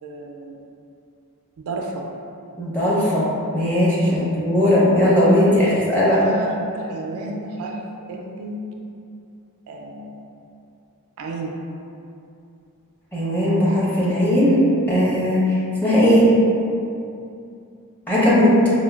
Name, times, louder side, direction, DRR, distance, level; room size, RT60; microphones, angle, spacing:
voice 1, 0.0-0.5 1.6-2.1 4.1-4.4 5.4-8.6 9.7-10.2 11.2-11.6, right 2 dB, 70° right, 0 dB, 0.3 m, -32 dB
voice 2, 2.6-3.3 3.5-6.2 13.1-14.6 14.9-16.3 18.1-18.6, left 1 dB, 10° left, -9 dB, 0.7 m, -18 dB
4.3 x 2.2 x 2.3 m, 2.6 s
head